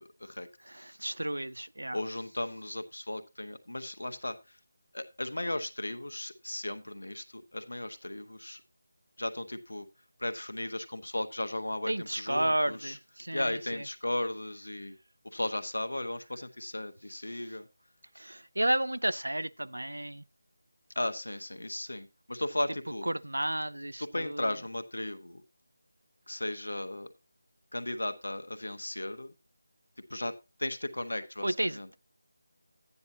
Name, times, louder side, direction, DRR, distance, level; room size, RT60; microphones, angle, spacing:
voice 1, 0.7-2.0 11.9-13.5 18.2-20.2 23.1-24.4 31.4-31.8, right 1 dB, 90° right, 0.5 m, -32 dB
voice 2, 1.9-4.4 4.9-8.6 9.2-9.9 10.2-13.0 13.3-15.0 15.2-17.7 20.9-23.1 24.0-25.4 26.3-27.1 27.7-29.3 30.1-30.3 30.6-31.9, left 1 dB, 80° left, 1.4 m, -35 dB
12.0 x 9.6 x 2.8 m
figure-of-eight pair, 165°, 0 cm